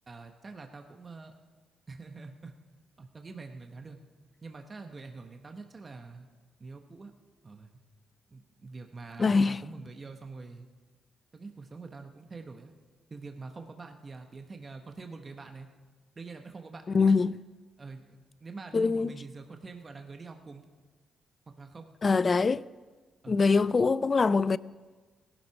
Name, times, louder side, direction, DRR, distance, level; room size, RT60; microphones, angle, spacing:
voice 1, 0.1-1.3 1.9-2.5 3.0-4.0 4.4-6.3 6.6-7.1 7.4-7.8 8.3-10.7 11.3-12.7 13.1-15.7 16.2-17.2 17.8-20.7 21.6-21.9 23.2-23.4, right 4 dB, 35° right, 1.3 m, -45 dB
voice 2, 9.2-9.6 16.9-17.3 18.7-19.1 22.0-22.6 23.3-24.6, left 4 dB, 40° left, 0.4 m, -23 dB
17.5 x 11.5 x 4.9 m
cardioid pair, 70°, 0 cm